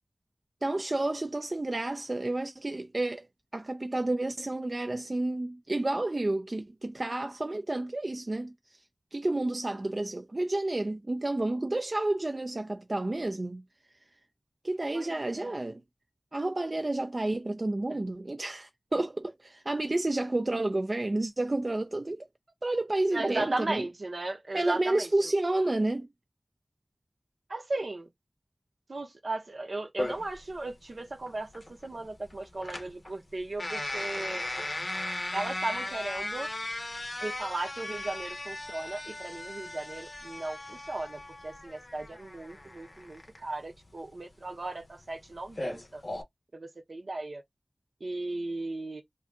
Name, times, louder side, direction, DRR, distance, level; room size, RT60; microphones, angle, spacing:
voice 1, 0.6-3.3 3.5-8.8 9.1-13.6 14.6-15.8 16.3-22.3 22.6-23.9 24.5-26.1, right 2 dB, 50° right, 0.3 m, -30 dB
voice 2, 14.9-15.6 23.1-25.1 27.5-28.1 28.9-34.5 35.3-36.5 37.2-46.0 46.5-47.4 48.0-49.0, right 2 dB, 75° right, 0.7 m, -36 dB
sound 1, 30.0-46.2, left 1 dB, 55° left, 0.6 m, -38 dB
2.6 x 2.3 x 3.4 m
wide cardioid pair, 40°, 0 cm